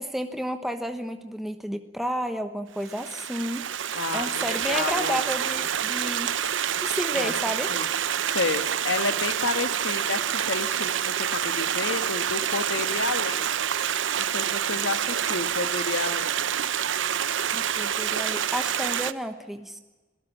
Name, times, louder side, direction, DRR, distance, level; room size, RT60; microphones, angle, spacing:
voice 1, 0.0-3.6 4.1-6.3 6.8-7.7 17.5-19.8, equal, ahead, 7 dB, 1.0 m, -31 dB
Stream, 2.8-19.1, right 9 dB, 75° right, 0.8 m, -27 dB
voice 2, 3.9-5.2 7.1-7.3 7.7-7.9 8.3-13.5 14.2-16.4, left 3 dB, 75° left, 10 dB, 1.6 m, -30 dB
26.5 x 18.0 x 7.2 m, 1.2 s
head